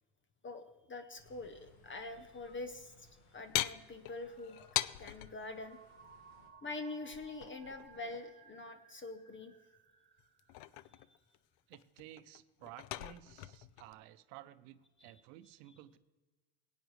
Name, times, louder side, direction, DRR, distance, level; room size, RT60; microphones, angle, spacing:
voice 1, 0.4-4.6 5.0-5.8 6.6-9.5 10.9-11.1, left 2 dB, 25° left, 9 dB, 0.7 m, -45 dB
sound 1, 1.2-6.5, left 2 dB, 90° left, 1.9 m, -65 dB
sound 2, 3.5-5.4 7.1-8.2 10.2-11.4 11.7-13.9, left 16 dB, 70° left, 0.6 m, -40 dB
sound 3, 4.0-11.3, right 6 dB, 20° right, 1.0 m, -62 dB
voice 2, 11.7-16.0, right 14 dB, 80° right, 13 dB, 0.8 m, -54 dB
17.5 x 9.3 x 3.2 m, 1.2 s
supercardioid pair, 110°, 50 cm